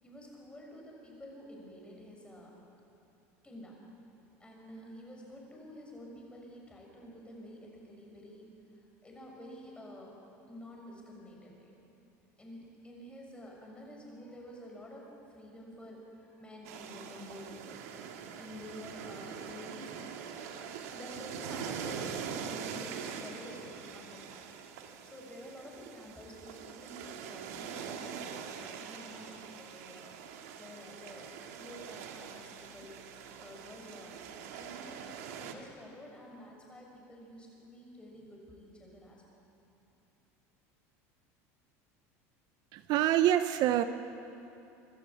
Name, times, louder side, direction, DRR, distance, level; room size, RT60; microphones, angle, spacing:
voice 1, 0.0-2.6 3.4-3.8 4.4-10.2 10.5-11.7 12.4-24.5 24.8-33.0 33.4-34.2 34.5-34.9 35.4-39.2, equal, 15° left, -1 dB, 6.7 m, -50 dB
sound 1, 16.6-35.5, right 7 dB, 80° right, 1.9 m, -43 dB
voice 2, 42.7-43.8, right 12 dB, 60° right, 11 dB, 0.8 m, -26 dB
25.0 x 12.5 x 8.6 m, 2.7 s
supercardioid pair, 100°, 8 cm